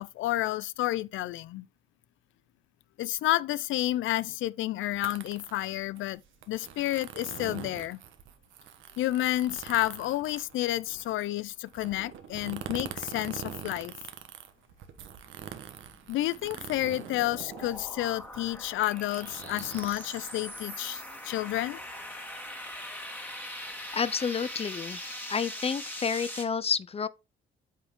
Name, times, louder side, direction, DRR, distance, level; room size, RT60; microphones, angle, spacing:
voice 1, 0.0-1.7 3.0-6.2 6.5-8.0 9.0-13.9 16.1-21.8, left 15 dB, 80° left, 0.5 m, -30 dB
sound 1, 4.9-21.0, right 9 dB, 80° right, 1.2 m, -44 dB
sound 2, 15.9-26.5, left 1 dB, 10° left, 2.0 m, -41 dB
voice 2, 23.9-25.0 25.3-27.1, left 6 dB, 30° left, 0.5 m, -30 dB
8.8 x 5.6 x 3.7 m
cardioid pair, 90°, 20 cm